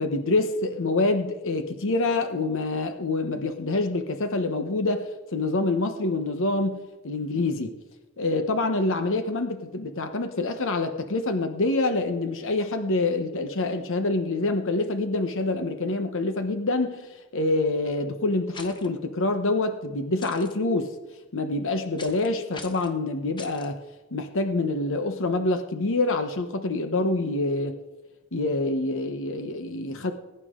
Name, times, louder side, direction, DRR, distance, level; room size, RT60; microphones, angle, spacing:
voice 1, 0.0-7.8 8.2-20.9 21.3-23.8 24.1-27.7 28.3-30.1, left 2 dB, 60° left, 7 dB, 1.0 m, -26 dB
sound 1, 18.5-18.9 20.2-20.5 22.0-22.3 22.5-22.9 23.4-23.7, left 3 dB, 20° left, 1.1 m, -42 dB
20.0 x 9.8 x 3.7 m, 1.1 s
head